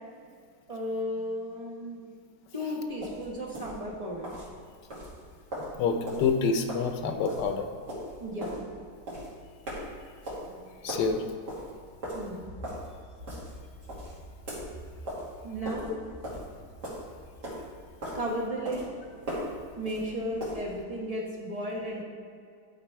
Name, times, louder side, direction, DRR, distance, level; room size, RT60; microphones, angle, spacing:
voice 1, 0.7-2.0 2.5-4.3 8.2-8.6 10.5-10.7 12.1-12.4 15.4-16.0 18.1-18.9 19.8-22.0, equal, 25° right, -4 dB, 1.3 m, -34 dB
sound 1, 2.9-20.8, equal, 75° right, 2.8 m, -40 dB
voice 2, 5.8-7.6 10.8-11.2, left 5 dB, 80° left, 6 dB, 1.3 m, -27 dB
11.0 x 4.1 x 4.6 m, 2.2 s
omnidirectional pair, 1.8 m